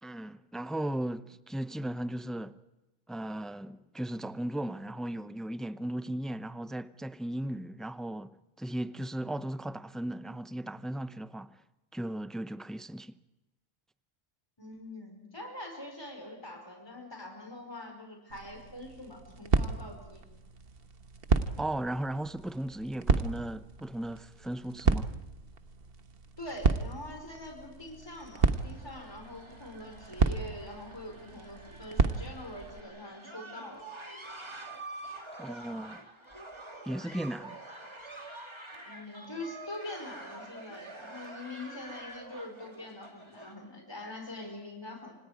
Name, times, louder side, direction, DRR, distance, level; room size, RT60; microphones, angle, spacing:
voice 1, 0.0-2.5 3.1-11.6 11.9-13.1 21.6-25.1 35.4-36.1 36.9-37.6, right 1 dB, ahead, 0.3 m, -36 dB
voice 2, 14.6-20.2 26.4-33.9 38.9-45.2, left 1 dB, 20° left, 4.9 m, -44 dB
sound 1, 18.3-32.8, right 4 dB, 50° right, 1.4 m, -32 dB
sound 2, 27.9-43.5, right 2 dB, 20° right, 2.6 m, -47 dB
29.0 x 26.5 x 5.0 m
omnidirectional pair, 1.3 m